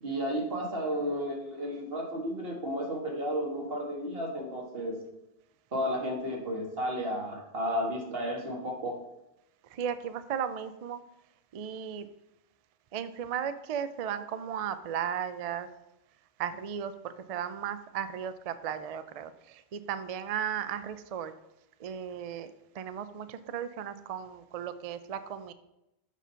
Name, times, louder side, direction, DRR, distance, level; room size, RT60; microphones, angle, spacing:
voice 1, 0.0-5.0 5.7-9.0, equal, 55° right, 0 dB, 1.7 m, -33 dB
voice 2, 9.6-11.0 11.5-12.1 12.9-15.7 16.4-21.3 21.8-25.5, right 8 dB, 75° right, 12 dB, 0.3 m, -35 dB
7.2 x 4.2 x 5.6 m, 0.87 s
omnidirectional pair, 1.2 m